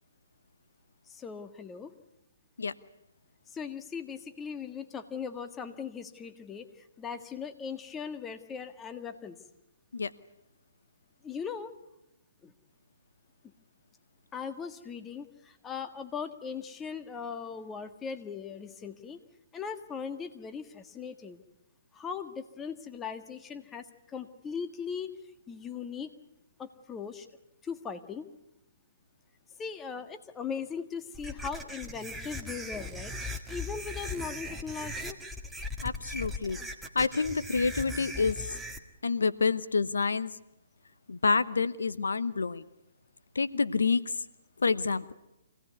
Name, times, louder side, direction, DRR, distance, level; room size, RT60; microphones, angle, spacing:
voice 1, 1.1-1.9 3.5-6.7 7.0-9.4 11.2-11.7 12.4-12.5 14.3-19.2 19.5-21.4 21.9-25.1 25.5-26.1 26.6-27.3 27.6-28.3 29.6-33.1 33.5-35.2, left 6 dB, 15° left, 8 dB, 1.6 m, -39 dB
sound 1, 31.1-38.8, left 1 dB, 5° right, 1.8 m, -39 dB
voice 2, 35.8-36.6 36.9-38.4 39.0-40.4 41.1-42.7 43.3-44.2 44.6-45.1, left 4 dB, 85° left, 15 dB, 0.9 m, -28 dB
25.0 x 17.5 x 9.5 m, 0.90 s
hypercardioid pair, 140°, 0 cm